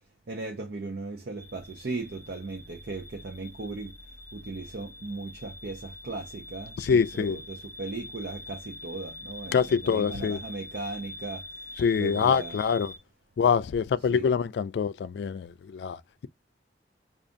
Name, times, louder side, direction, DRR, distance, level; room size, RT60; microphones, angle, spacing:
voice 1, 0.3-3.9 4.3-11.4 12.0-12.6 14.1-14.3, right 3 dB, 70° right, 0.6 m, -37 dB
sound 1, 1.4-13.0, left 2 dB, 10° left, 0.8 m, -44 dB
voice 2, 6.8-7.4 9.5-10.4 11.8-12.9 13.4-16.3, left 6 dB, 75° left, 0.3 m, -25 dB
4.9 x 2.4 x 2.5 m
head